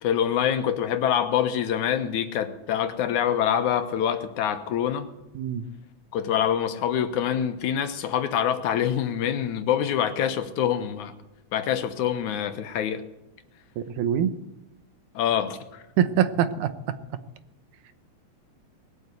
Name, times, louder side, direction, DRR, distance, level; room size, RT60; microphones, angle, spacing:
voice 1, 0.0-5.1 6.1-11.1 11.5-13.0 15.2-15.8, left 9 dB, 85° left, 9 dB, 2.6 m, -25 dB
voice 2, 5.3-5.7 13.8-14.3 16.0-16.7, right 10 dB, 85° right, 11 dB, 2.3 m, -24 dB
20.5 x 8.0 x 8.2 m, 0.97 s
omnidirectional pair, 3.4 m